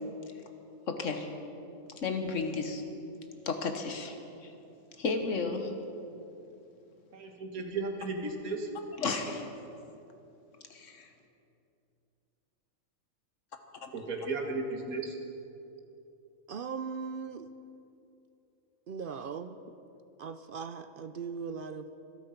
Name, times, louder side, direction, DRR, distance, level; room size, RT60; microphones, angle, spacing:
voice 1, 0.9-1.3 2.0-2.8 3.5-4.5 4.9-5.7 9.0-9.4 10.7-11.1 13.8-13.9, left 4 dB, 60° left, 6 dB, 1.6 m, -33 dB
voice 2, 7.1-8.7 13.9-15.2, right 3 dB, 85° right, 3 dB, 2.1 m, -35 dB
voice 3, 16.5-17.5 18.9-19.6 20.2-21.9, right 5 dB, 60° right, 10 dB, 0.5 m, -39 dB
25.5 x 8.8 x 5.8 m, 2.8 s
omnidirectional pair, 1.5 m